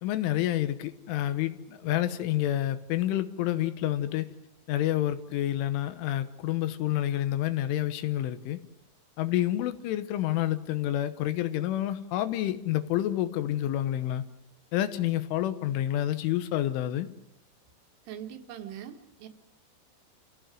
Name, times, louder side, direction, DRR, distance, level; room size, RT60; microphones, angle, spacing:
voice 1, 0.0-4.3 4.7-8.6 9.2-14.2 14.7-17.1, left 13 dB, 85° left, 12 dB, 3.6 m, -28 dB
voice 2, 18.1-19.3, right 10 dB, 85° right, 6 dB, 4.2 m, -42 dB
29.5 x 16.0 x 7.7 m, 0.83 s
omnidirectional pair, 5.5 m